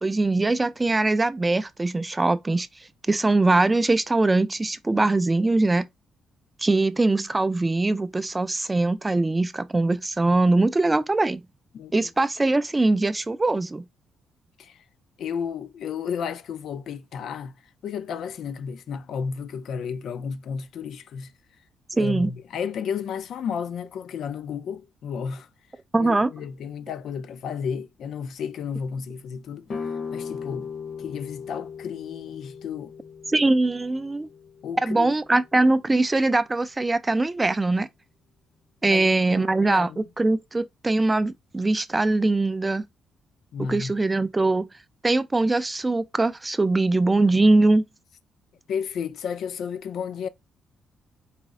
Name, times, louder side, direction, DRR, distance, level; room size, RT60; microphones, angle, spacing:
voice 1, 0.0-2.7 3.1-5.9 6.6-11.4 11.9-13.9 22.0-22.3 25.9-26.3 33.3-34.3 34.8-37.9 38.8-42.9 43.6-44.7 45.0-47.8, right 2 dB, 20° right, 0.3 m, -22 dB
voice 2, 11.7-12.1 14.6-14.8 15.2-17.5 17.8-21.3 21.9-25.5 26.0-29.6 30.1-30.7 31.0-32.9 34.6-35.1 38.8-39.1 39.4-40.0 43.5-43.9 46.6-46.7 48.7-50.3, left 6 dB, 70° left, 0.4 m, -32 dB
sound 1, 29.7-35.4, left 6 dB, 50° left, 0.8 m, -38 dB
4.1 x 2.0 x 3.6 m
cardioid pair, 90°, 0 cm